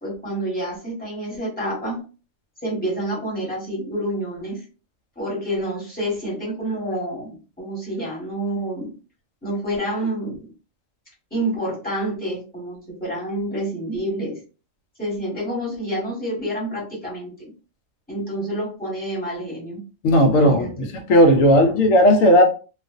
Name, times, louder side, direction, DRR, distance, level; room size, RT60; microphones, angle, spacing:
voice 1, 0.0-2.0 2.6-4.6 5.2-8.9 9.4-10.5 11.3-14.4 15.0-17.3 18.1-19.8 20.3-20.9, right 1 dB, 5° left, 1.1 m, -28 dB
voice 2, 20.0-22.4, equal, 80° left, 1.0 m, -15 dB
2.4 x 2.4 x 2.4 m
omnidirectional pair, 1.4 m